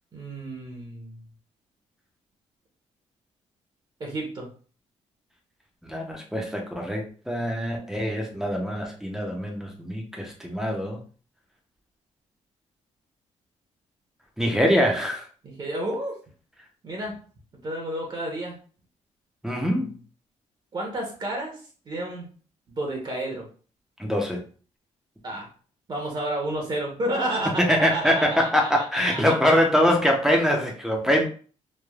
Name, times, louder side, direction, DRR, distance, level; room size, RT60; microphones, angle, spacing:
voice 1, 0.1-1.2 4.0-4.5 15.4-16.2 16.8-17.2 17.6-18.6 20.7-22.3 22.7-23.5 25.2-25.5 25.9-29.3, right 1 dB, 40° right, 0 dB, 0.8 m, -31 dB
voice 2, 5.9-11.0 14.4-15.2 19.4-19.9 24.0-24.4 27.7-31.2, equal, 5° right, 0 dB, 0.6 m, -23 dB
3.2 x 2.2 x 2.3 m, 0.40 s
cardioid pair, 95°, 13 cm